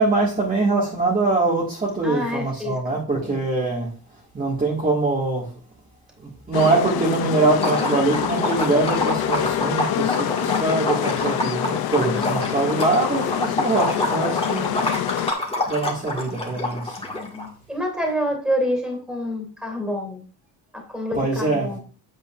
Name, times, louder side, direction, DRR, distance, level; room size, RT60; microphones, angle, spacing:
voice 1, 0.0-3.9 4.3-5.4 6.2-14.8 15.7-17.0 21.1-21.7, right 3 dB, 20° right, 1.8 m, -23 dB
voice 2, 2.0-3.4 12.0-12.5 17.1-20.2 20.7-21.8, equal, ahead, 2.8 m, -28 dB
sound 1, 6.5-15.3, left 12 dB, 60° left, 0.5 m, -26 dB
Liquid, 7.6-17.5, left 2 dB, 15° left, 1.8 m, -27 dB
8.8 x 7.9 x 2.5 m
cardioid pair, 160°, 43 cm